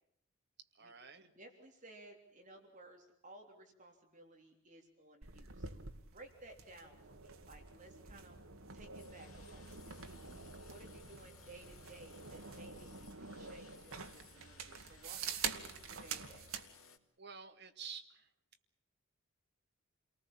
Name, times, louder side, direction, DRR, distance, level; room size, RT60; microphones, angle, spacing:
voice 1, 0.6-1.3 17.2-18.3, right 6 dB, 55° right, 6 dB, 2.1 m, -50 dB
voice 2, 1.2-8.4 8.7-16.5, right 2 dB, 35° right, 3 dB, 3.4 m, -58 dB
sound 1, 5.2-16.7, right 6 dB, 80° right, 1.9 m, -47 dB
sound 2, 9.0-17.0, left 6 dB, 85° left, 2.8 m, -61 dB
29.0 x 19.5 x 7.4 m, 0.69 s
head